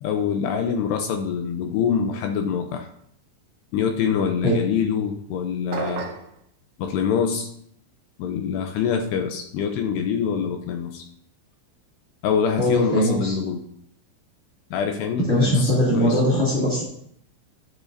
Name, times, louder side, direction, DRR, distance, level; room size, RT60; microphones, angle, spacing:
voice 1, 0.0-2.9 3.7-6.1 6.8-7.5 8.2-11.0 12.2-13.7 14.7-16.2, left 7 dB, 80° left, 4 dB, 2.5 m, -25 dB
sound 1, 5.7-6.3, right 5 dB, 85° right, 1.9 m, -30 dB
voice 2, 12.6-13.4 15.3-16.8, equal, 25° left, -7 dB, 1.5 m, -20 dB
11.5 x 10.5 x 2.7 m, 0.70 s
omnidirectional pair, 5.5 m